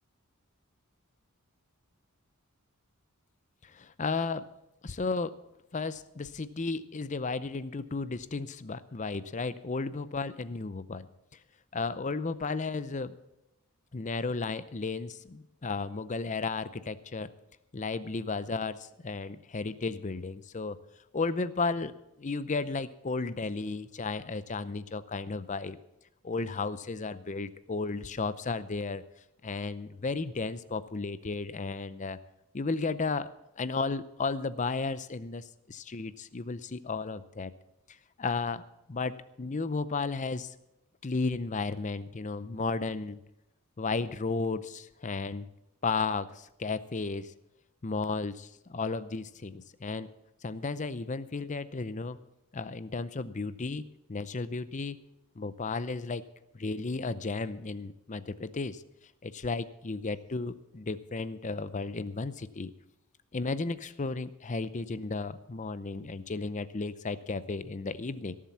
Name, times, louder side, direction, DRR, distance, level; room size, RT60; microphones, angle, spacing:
voice 1, 3.6-4.5 4.8-5.3 5.7-11.1 11.7-13.2 13.9-17.3 17.7-20.8 21.1-21.9 22.2-25.8 26.2-29.0 29.4-32.2 32.5-33.3 33.6-37.5 38.2-38.6 38.9-40.5 41.0-43.2 43.8-45.5 45.8-47.3 47.8-50.1 50.4-52.2 52.5-55.0 55.4-56.2 56.6-58.8 59.2-62.7 63.3-68.4, left 3 dB, 35° left, 15 dB, 0.6 m, -34 dB
17.5 x 7.5 x 7.1 m, 0.89 s
head